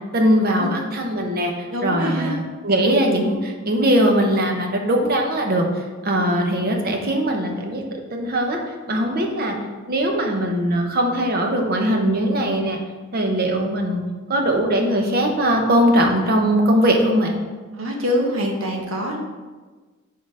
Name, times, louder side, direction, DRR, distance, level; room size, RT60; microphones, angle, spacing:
voice 1, 0.1-1.5 1.8-8.6 8.9-9.5 9.9-12.8 13.1-14.0 14.3-17.3, equal, 50° right, 2 dB, 0.9 m, -20 dB
voice 2, 1.7-2.4 6.1-6.4 17.7-19.2, equal, 80° right, 1 dB, 1.1 m, -25 dB
6.4 x 3.9 x 4.8 m, 1.3 s
head